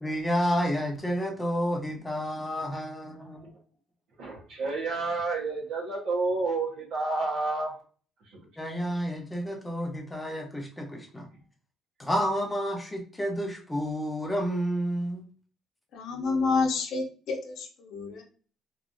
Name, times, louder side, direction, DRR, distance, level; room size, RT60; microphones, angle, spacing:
voice 1, 0.0-3.4 8.6-11.3 12.0-15.2, equal, 10° left, 0.7 m, -30 dB
voice 2, 3.2-3.5 4.2-7.7, right 3 dB, 90° right, 1.1 m, -30 dB
voice 3, 15.9-18.2, left 4 dB, 70° left, 0.7 m, -29 dB
3.0 x 2.6 x 2.5 m
cardioid pair, 130°, 0 cm